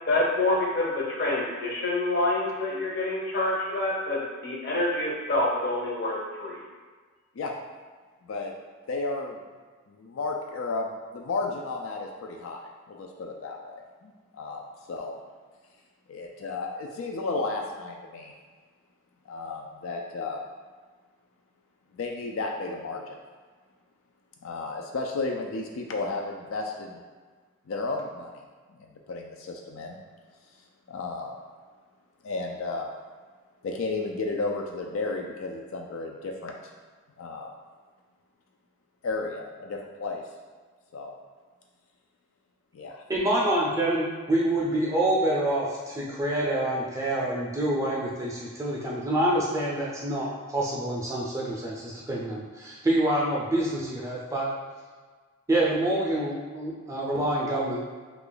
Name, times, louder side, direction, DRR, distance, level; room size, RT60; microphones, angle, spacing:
voice 1, 0.1-6.6, left 2 dB, 50° left, -4 dB, 0.8 m, -27 dB
voice 2, 8.2-8.5 8.9-9.4 9.9-12.6 12.9-14.6 14.9-15.1 16.1-18.3 19.3-20.4 21.9-23.2 24.4-27.0 27.7-28.3 28.7-30.0 30.9-31.3 32.2-32.9 33.6-36.5 37.2-37.5 39.0-40.2 40.9-41.1 42.7-43.0, left 3 dB, 75° left, 1 dB, 0.4 m, -33 dB
voice 3, 43.1-54.5 55.5-57.8, right 1 dB, 15° right, -4 dB, 0.4 m, -27 dB
2.8 x 2.4 x 3.8 m, 1.5 s
head